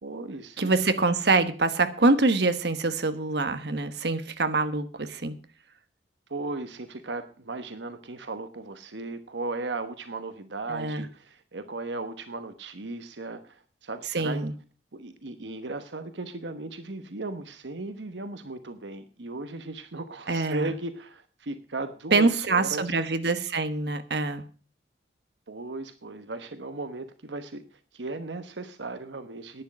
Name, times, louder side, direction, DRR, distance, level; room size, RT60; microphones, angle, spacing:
voice 1, 0.0-0.7 6.3-14.4 14.9-22.9 25.5-29.6, right 3 dB, 80° right, 10 dB, 1.1 m, -36 dB
voice 2, 0.6-5.4 10.7-11.0 14.1-14.5 20.3-20.7 22.1-24.4, right 3 dB, 65° right, 10 dB, 1.3 m, -25 dB
11.0 x 10.0 x 6.1 m, 0.38 s
head